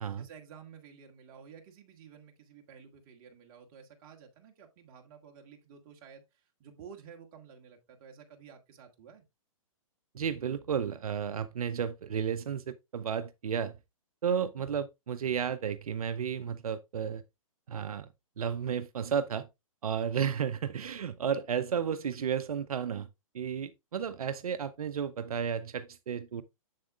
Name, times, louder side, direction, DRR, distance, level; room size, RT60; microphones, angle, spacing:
voice 1, 0.2-9.2, right 7 dB, 40° right, 1.9 m, -52 dB
voice 2, 10.1-13.7 14.2-17.2 17.7-18.1 18.4-19.5 19.8-23.1 23.3-26.4, right 7 dB, 85° right, 0.6 m, -33 dB
7.4 x 7.4 x 2.4 m
hypercardioid pair, 145°, 18 cm